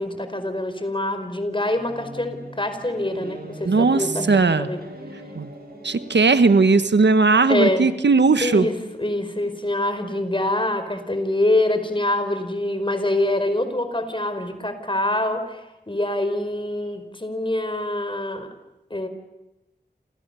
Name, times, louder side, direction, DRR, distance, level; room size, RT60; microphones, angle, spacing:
voice 1, 0.0-4.8 7.5-7.9 8.4-15.6 15.9-18.5 18.9-19.1, left 1 dB, 30° left, 9 dB, 4.8 m, -25 dB
sound 1, 1.8-6.9, right 1 dB, 60° right, 7.8 m, -39 dB
voice 2, 3.6-4.7 5.3-5.5 5.8-8.7, right 4 dB, 85° right, 12 dB, 1.3 m, -18 dB
29.0 x 28.5 x 7.0 m, 0.93 s
wide cardioid pair, 55°, 18 cm